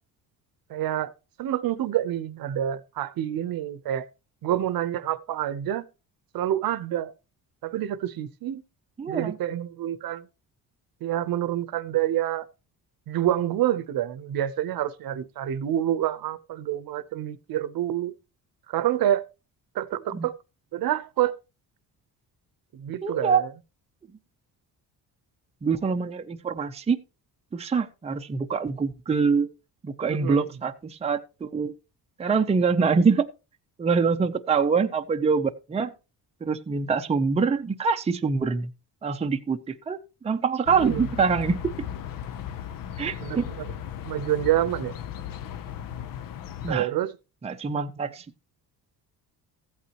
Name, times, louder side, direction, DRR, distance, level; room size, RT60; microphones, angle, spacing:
voice 1, 0.7-1.1 1.4-4.1 4.4-5.9 6.3-7.1 7.6-8.6 9.1-10.3 11.0-12.5 13.1-18.1 18.7-19.3 19.7-20.3 20.7-21.3 22.7-23.5 30.1-30.5 40.8-41.1 43.2-43.7 44.0-44.9 46.7-47.2, right 12 dB, 65° right, 0.9 m, -27 dB
voice 2, 9.0-9.3 20.1-20.3 23.0-23.4 25.6-27.0 27.5-29.5 29.8-31.7 32.2-33.3 33.8-35.9 36.4-38.7 39.0-40.0 40.2-41.6 43.0-43.5 46.6-46.9 47.4-48.2, right 5 dB, 15° right, 0.6 m, -24 dB
sound 1, 40.7-46.7, left 10 dB, 60° left, 0.8 m, -36 dB
15.0 x 8.4 x 3.0 m
cardioid pair, 145°, 38 cm